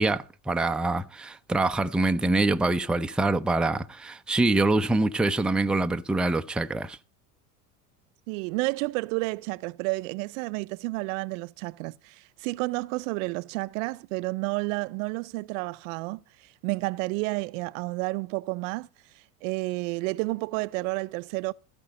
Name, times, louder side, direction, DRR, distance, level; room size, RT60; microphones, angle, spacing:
voice 1, 0.0-7.0, right 2 dB, ahead, 0.5 m, -25 dB
voice 2, 8.3-18.9 19.1-21.5, right 25 dB, 60° right, 0.5 m, -31 dB
15.0 x 5.3 x 7.7 m
hypercardioid pair, 85°, 45 cm